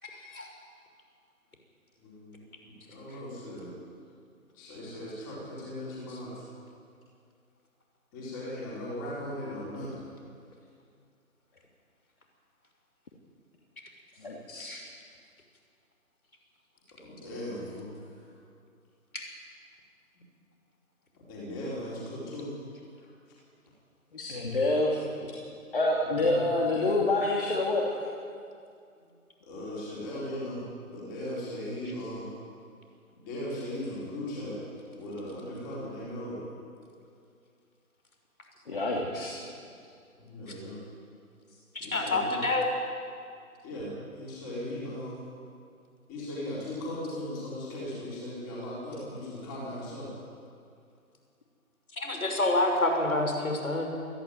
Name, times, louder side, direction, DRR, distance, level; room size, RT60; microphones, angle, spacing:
voice 1, 0.0-0.5 6.1-6.2 14.6-14.9 19.1-19.2 41.7-42.7 51.9-53.9, left 2 dB, 70° left, 2 dB, 6.0 m, -28 dB
voice 2, 2.0-3.7 4.5-6.4 8.1-10.0 17.0-17.9 21.3-22.5 26.0-26.4 29.4-30.6 30.9-32.3 33.3-34.6 34.9-36.4 40.2-40.8 41.8-42.5 43.6-45.2 46.1-50.1, left 1 dB, 15° left, -6 dB, 4.1 m, -38 dB
voice 3, 14.2-14.8 24.1-25.3 25.7-28.1 38.7-39.4, left 2 dB, 40° left, -2 dB, 2.8 m, -27 dB
21.0 x 15.0 x 9.4 m, 2.3 s
figure-of-eight pair, 155°, 44 cm